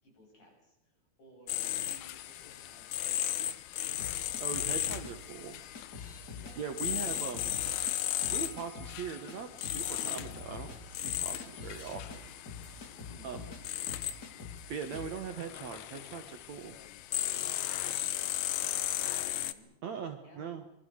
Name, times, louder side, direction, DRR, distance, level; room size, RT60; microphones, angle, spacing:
voice 1, 0.0-3.5 6.3-6.6 6.9-7.1 13.1-13.3 17.7-19.8 20.2-20.6, equal, 55° left, 0 dB, 9.4 m, -58 dB
sound 1, 1.5-19.5, left 13 dB, 80° left, 2.8 m, -36 dB
sound 2, 4.0-5.1 5.7-6.5 6.8-7.9 8.2-9.0 9.3-9.4 9.6-13.6 13.9-14.6 14.9-15.1, left 4 dB, 30° left, 3.3 m, -45 dB
voice 2, 4.4-5.6 6.6-7.5 8.3-12.2 13.2-13.5 14.7-16.8 19.8-20.6, right 6 dB, 60° right, 6 dB, 2.2 m, -40 dB
sound 3, 6.4-11.1, left 1 dB, 10° right, 4.2 m, -60 dB
26.5 x 23.0 x 6.5 m, 0.79 s
omnidirectional pair, 4.4 m